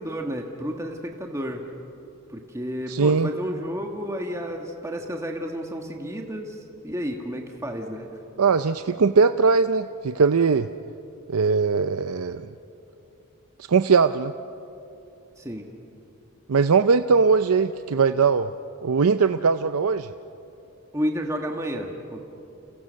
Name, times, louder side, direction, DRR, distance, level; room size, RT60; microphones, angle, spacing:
voice 1, 0.0-1.6 2.3-6.6 6.8-8.1 15.4-15.7 20.9-22.2, equal, 15° right, 2 dB, 1.6 m, -31 dB
voice 2, 2.9-3.3 8.4-10.7 11.3-12.5 13.7-14.3 16.5-18.5 18.8-20.1, right 5 dB, 80° right, 10 dB, 0.6 m, -20 dB
30.0 x 28.5 x 6.4 m, 2.8 s
head